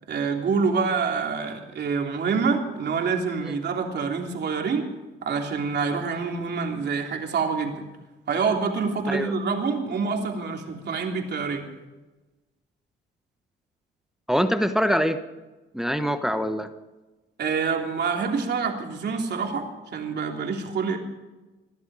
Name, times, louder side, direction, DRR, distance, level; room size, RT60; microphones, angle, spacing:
voice 1, 0.1-4.9 5.2-7.8 8.3-11.7 17.4-21.0, right 5 dB, 60° right, 2 dB, 3.4 m, -26 dB
voice 2, 14.3-15.2 15.7-16.7, equal, ahead, 8 dB, 1.3 m, -24 dB
21.5 x 13.0 x 5.0 m, 1.1 s
cardioid pair, 90°, 20 cm